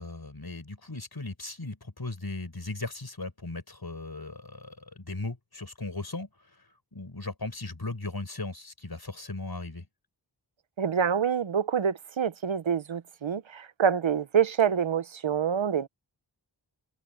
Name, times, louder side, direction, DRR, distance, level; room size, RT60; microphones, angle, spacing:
voice 1, 0.0-9.9, left 2 dB, 50° left, 6.6 m, -37 dB
voice 2, 10.8-15.9, right 7 dB, 80° right, 0.9 m, -26 dB
open air
wide cardioid pair, 60°, 46 cm